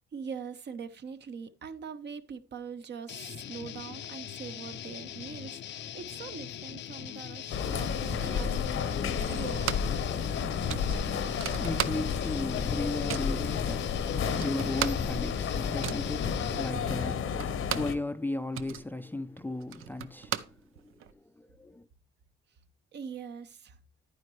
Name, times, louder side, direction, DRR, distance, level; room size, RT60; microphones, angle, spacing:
voice 1, 0.1-8.6 9.3-9.8 22.9-23.8, right 6 dB, 55° right, 0.9 m, -42 dB
sound 1, 3.1-16.8, left 10 dB, 60° left, 0.5 m, -42 dB
sound 2, 7.5-18.0, left 6 dB, 80° left, 1.0 m, -31 dB
sound 3, 9.2-10.0 10.3-10.4 10.7-12.4 12.6-13.4 13.9-14.0 14.2-18.0 18.3-21.1, right 11 dB, 80° right, 0.6 m, -37 dB
voice 2, 11.2-20.4 21.4-21.8, left 2 dB, 10° left, 0.4 m, -36 dB
10.5 x 9.5 x 3.1 m
cardioid pair, 115°, 21 cm